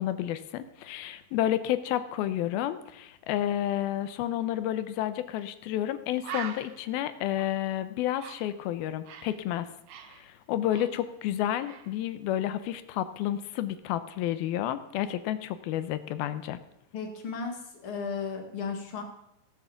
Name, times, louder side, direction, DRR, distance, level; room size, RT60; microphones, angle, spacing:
voice 1, 0.0-9.7 10.1-16.6, left 12 dB, 85° left, 12 dB, 2.6 m, -30 dB
Bird, 5.4-5.5 5.8-5.9 6.2-9.4 9.7-11.4 11.6-11.9, right 8 dB, 70° right, 2.5 m, -43 dB
voice 2, 16.9-19.0, left 5 dB, 45° left, 3 dB, 2.2 m, -35 dB
17.0 x 7.0 x 7.1 m, 0.83 s
omnidirectional pair, 4.4 m